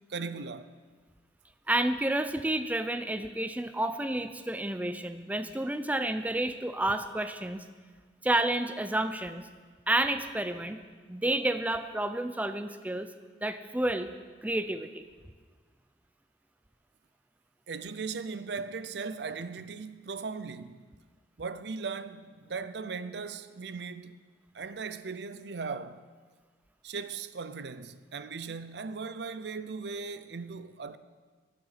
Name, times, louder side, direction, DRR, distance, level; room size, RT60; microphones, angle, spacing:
voice 1, 0.1-0.7 17.7-20.9 21.4-24.2 24.5-26.0 26.8-31.0, right 4 dB, 65° right, 0.6 m, -38 dB
voice 2, 1.7-7.6 8.2-9.4 9.9-10.8 11.1-13.1 13.4-14.1 14.4-15.1, right 1 dB, 10° right, 0.5 m, -30 dB
14.5 x 10.0 x 5.8 m
head